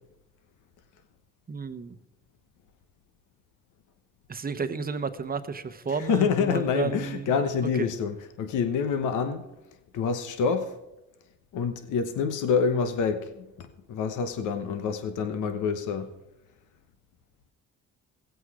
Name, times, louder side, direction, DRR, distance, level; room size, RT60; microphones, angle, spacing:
voice 1, 1.5-1.9 4.3-7.3 7.8-7.9, right 5 dB, 30° right, 0.9 m, -32 dB
voice 2, 6.0-9.4 9.9-10.7 11.5-16.1, left 6 dB, 80° left, 1.1 m, -27 dB
17.0 x 8.0 x 4.9 m
cardioid pair, 90°, 30 cm